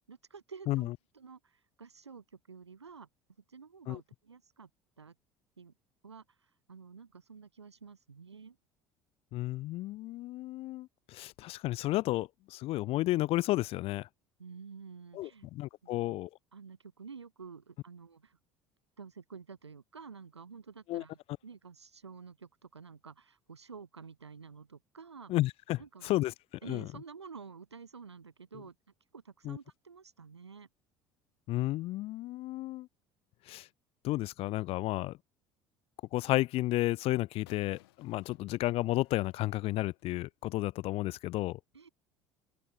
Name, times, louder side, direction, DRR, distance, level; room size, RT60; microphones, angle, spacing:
voice 1, 0.1-3.1 3.5-4.7 5.0-5.1 5.6-5.7 6.0-6.2 6.7-8.6 14.4-15.5 15.8-16.2 16.5-18.4 19.0-25.3 25.8-26.1 26.6-28.7 29.1-30.7 41.7-41.9, right 5 dB, 80° right, 1.8 m, -50 dB
voice 2, 9.3-14.1 15.1-16.3 20.9-21.0 25.3-26.3 26.7-26.9 29.4-29.6 31.5-32.9 33.5-33.7 34.0-35.2 36.1-41.6, left 17 dB, 45° left, 0.4 m, -32 dB
sound 1, 37.5-40.2, left 19 dB, 65° left, 7.2 m, -62 dB
open air
figure-of-eight pair, 60°, 14 cm